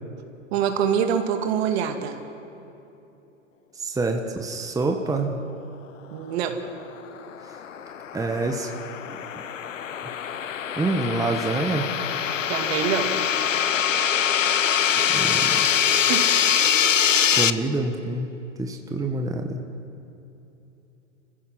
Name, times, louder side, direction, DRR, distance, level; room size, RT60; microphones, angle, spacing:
voice 1, 0.5-2.2 6.1-6.6 12.5-13.1 16.1-16.3, right 8 dB, 55° right, 5 dB, 2.2 m, -25 dB
voice 2, 3.7-5.4 8.1-8.7 10.8-11.9 14.9-15.7 17.3-18.3 18.6-19.6, right 2 dB, 10° right, 3 dB, 1.3 m, -26 dB
sound 1, 7.1-17.5, left 8 dB, 90° left, 0.8 m, -23 dB
28.5 x 15.5 x 5.9 m, 2.9 s
hypercardioid pair, 110°, 37 cm